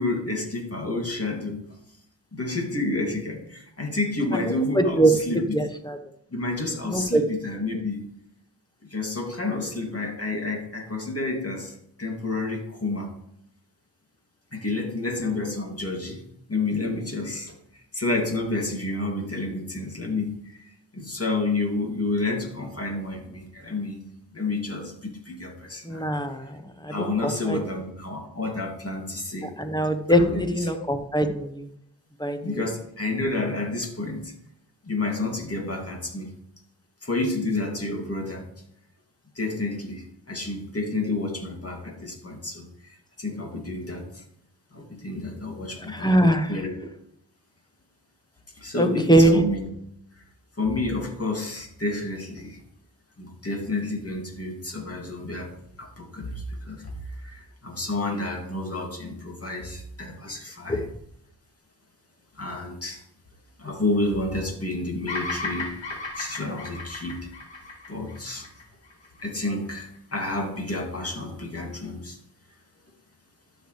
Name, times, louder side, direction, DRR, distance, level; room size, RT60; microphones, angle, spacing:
voice 1, 0.0-1.6 2.3-5.4 6.3-8.0 8.9-13.1 14.5-16.2 16.5-20.6 20.9-24.0 24.3-26.1 26.9-29.5 30.2-30.4 32.4-34.3 34.8-36.3 37.0-38.4 39.3-44.2 44.7-46.1 46.5-46.7 48.6-49.6 50.6-52.6 53.2-55.5 55.8-56.9 57.2-60.8 62.3-63.0 63.6-67.3 67.9-68.5 69.2-72.2, left 2 dB, 35° left, 0 dB, 2.6 m, -30 dB
voice 2, 4.3-6.0 6.9-7.2 25.8-27.6 29.4-31.7 32.2-32.7 45.9-46.6 48.8-49.4 60.7-60.9, right 1 dB, 10° left, 7 dB, 1.1 m, -22 dB
Bird vocalization bird call bird song, 65.1-69.4, left 3 dB, 85° left, 1.7 m, -35 dB
12.0 x 6.7 x 3.3 m, 0.72 s
cardioid pair, 60°, 43 cm